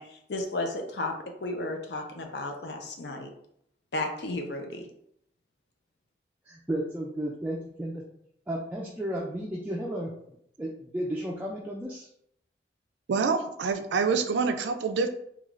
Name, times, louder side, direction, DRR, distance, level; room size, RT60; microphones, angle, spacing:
voice 1, 0.0-3.3 3.9-4.9, left 2 dB, 75° left, 3 dB, 0.6 m, -33 dB
voice 2, 6.5-8.0 8.5-10.1 10.6-12.1, right 1 dB, 10° right, -3 dB, 0.3 m, -33 dB
voice 3, 13.1-15.1, right 5 dB, 85° right, 8 dB, 0.4 m, -26 dB
3.6 x 2.4 x 3.1 m, 0.71 s
head